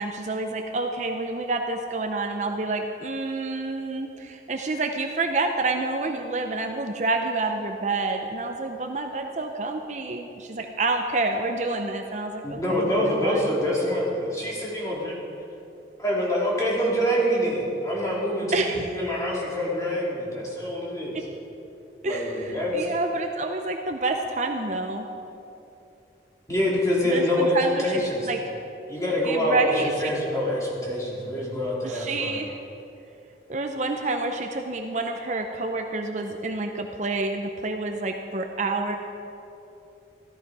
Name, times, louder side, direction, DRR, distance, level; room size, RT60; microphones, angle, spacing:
voice 1, 0.0-13.4 18.5-19.0 21.1-21.2 22.0-25.1 27.0-28.5 29.2-30.1 31.8-32.6 33.5-39.0, right 3 dB, 40° right, 4 dB, 0.7 m, -28 dB
voice 2, 12.4-15.2 16.0-21.1 22.0-22.8 26.5-28.3 28.9-32.4, equal, 20° left, -5 dB, 2.9 m, -26 dB
14.5 x 13.5 x 4.8 m, 2.8 s
head